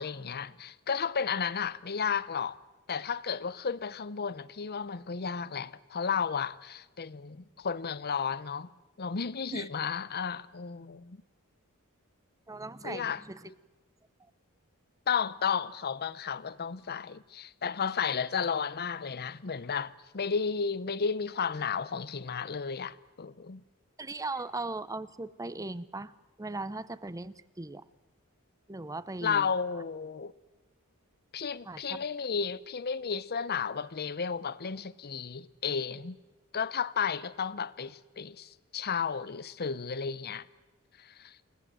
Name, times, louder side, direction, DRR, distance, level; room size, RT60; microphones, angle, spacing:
voice 1, 0.0-2.6 2.9-8.7 9.0-11.2 12.8-13.5 15.1-23.6 29.2-30.3 31.3-36.2 36.5-40.5 41.0-41.4, left 6 dB, 45° left, 0.8 m, -33 dB
voice 2, 12.5-13.5 24.0-26.1 26.4-27.8 28.7-29.5 31.7-32.0, right 2 dB, 15° right, 0.7 m, -38 dB
28.5 x 17.5 x 7.7 m
head